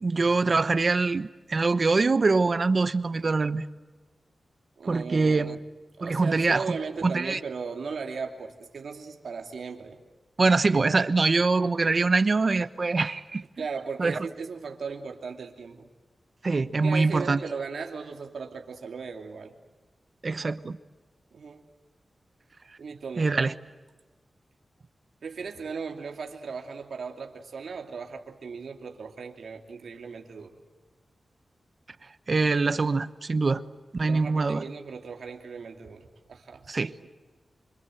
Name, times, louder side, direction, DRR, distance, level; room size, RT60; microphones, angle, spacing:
voice 1, 0.0-3.6 4.9-5.6 6.0-6.8 7.0-7.4 10.4-13.4 14.0-14.3 16.4-17.4 20.2-20.8 23.2-23.5 32.3-33.6 33.9-34.6 36.7-36.9, right 3 dB, 45° right, 13 dB, 0.9 m, -24 dB
voice 2, 4.8-5.5 6.0-10.0 13.6-15.9 16.8-19.5 21.3-21.6 22.8-23.3 25.2-30.6 34.0-37.1, right 5 dB, 85° right, 3 dB, 2.7 m, -37 dB
26.5 x 26.0 x 7.9 m, 1.2 s
wide cardioid pair, 100°, 0 cm